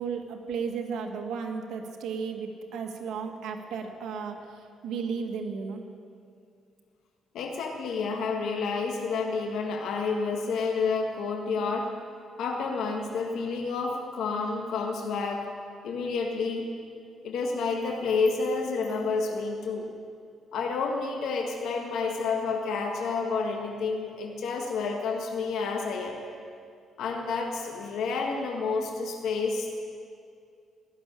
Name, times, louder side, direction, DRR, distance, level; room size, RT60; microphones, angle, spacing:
voice 1, 0.0-4.4 4.8-5.8, right 5 dB, 80° right, 4 dB, 1.7 m, -34 dB
voice 2, 7.3-12.0 12.4-15.5 15.8-16.6 17.2-19.9 20.5-26.2 27.0-29.7, left 4 dB, 80° left, 2 dB, 1.6 m, -29 dB
19.0 x 7.2 x 9.9 m, 2.4 s
cardioid pair, 90°, 0 cm